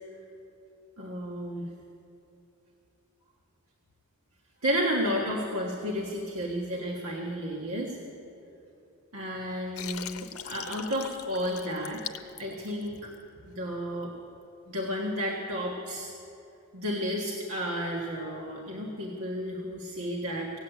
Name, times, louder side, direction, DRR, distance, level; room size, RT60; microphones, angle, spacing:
voice 1, 1.0-1.7 4.6-8.0 9.1-13.1 13.4-14.1 14.7-16.1 16.7-20.5, equal, 75° right, -2 dB, 1.5 m, -32 dB
Water, 9.8-13.2, left 8 dB, 75° left, 0.7 m, -40 dB
16.5 x 8.0 x 9.0 m, 2.9 s
head